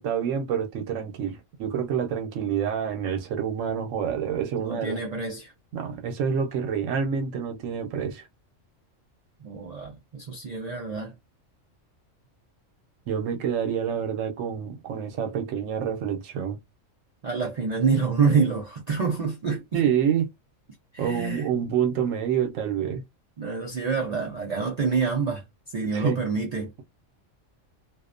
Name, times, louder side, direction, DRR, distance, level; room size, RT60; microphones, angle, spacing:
voice 1, 0.0-5.0 5.7-8.3 13.1-16.6 19.7-20.3 21.0-23.0 25.9-26.2, right 8 dB, 85° right, 1.0 m, -27 dB
voice 2, 4.6-5.5 9.4-11.1 17.2-19.8 20.9-21.5 23.4-25.4 25.7-26.7, right 5 dB, 60° right, 0.4 m, -27 dB
2.4 x 2.1 x 2.4 m
omnidirectional pair, 1.3 m